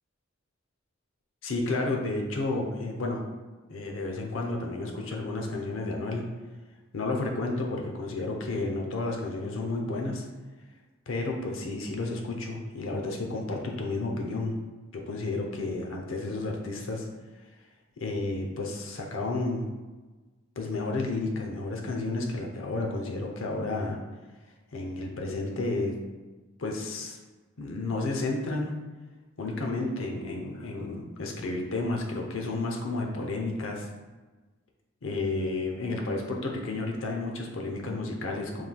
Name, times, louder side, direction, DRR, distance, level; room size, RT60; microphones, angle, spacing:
voice 1, 1.4-3.2 3.7-6.2 6.9-10.3 11.1-14.6 14.9-17.1 18.0-19.7 20.6-24.0 24.7-26.0 26.6-27.2 27.6-28.8 29.4-33.9 35.0-38.6, left 2 dB, 85° left, 1 dB, 0.7 m, -31 dB
5.5 x 3.2 x 2.2 m, 1.3 s
head